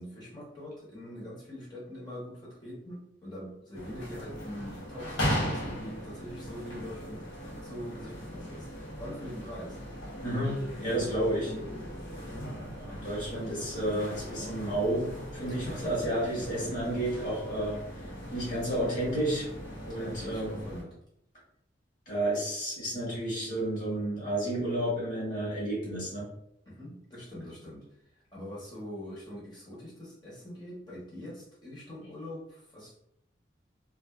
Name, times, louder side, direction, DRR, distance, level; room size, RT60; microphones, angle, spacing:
voice 1, 0.0-7.2 7.6-8.7 9.0-9.8 12.3-12.5 15.4-17.0 19.9-20.9 26.7-27.8 28.3-32.9, equal, 20° left, -6 dB, 0.8 m, -43 dB
sound 1, 3.7-20.8, equal, 80° left, 0.7 m, -38 dB
voice 2, 10.2-11.5 12.8-15.1 15.3-17.8 18.3-19.5 19.9-20.6 22.1-26.3, right 1 dB, 45° left, -6 dB, 1.1 m, -31 dB
2.4 x 2.2 x 2.3 m, 0.75 s
head